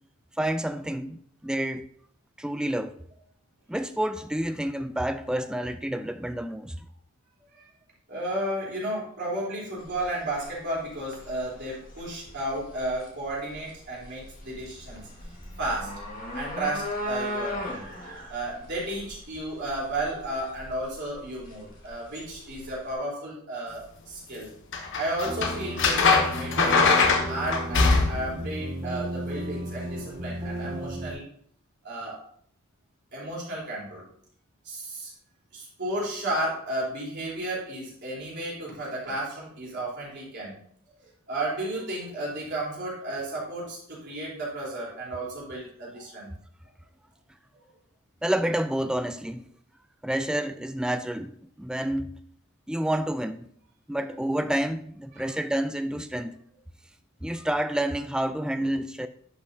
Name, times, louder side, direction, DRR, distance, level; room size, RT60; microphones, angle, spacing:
voice 1, 0.4-1.9 2.4-3.0 3.7-6.8 48.2-49.5 50.0-52.2 52.7-53.5 53.9-56.4 57.2-59.1, right 1 dB, 5° right, 0.3 m, -29 dB
voice 2, 8.1-15.1 15.6-16.0 16.3-24.5 25.0-31.2 31.8-32.2 33.1-34.0 34.6-35.1 35.5-40.6 41.3-46.3 55.2-55.3 57.3-57.4, right 1 dB, 50° right, 3.6 m, -33 dB
sound 1, 9.8-22.9, left 1 dB, 40° left, 1.7 m, -39 dB
sound 2, 24.7-28.4 30.6-30.8, left 4 dB, 60° left, 1.0 m, -22 dB
sound 3, 25.2-31.1, right 1 dB, 25° right, 1.5 m, -35 dB
11.0 x 5.6 x 2.7 m
head